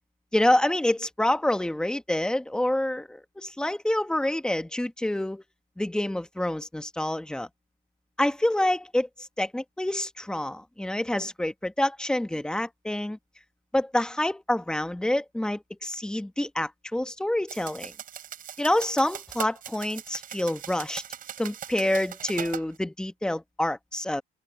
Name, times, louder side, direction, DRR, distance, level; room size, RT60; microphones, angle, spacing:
voice 1, 0.3-5.4 5.8-7.5 8.2-13.2 13.7-17.9 18.6-21.0 21.4-24.2, left 1 dB, 5° left, 1.2 m, -27 dB
sound 1, 17.5-22.7, right 10 dB, 55° right, 6.2 m, -40 dB
open air
cardioid pair, 110°, 17 cm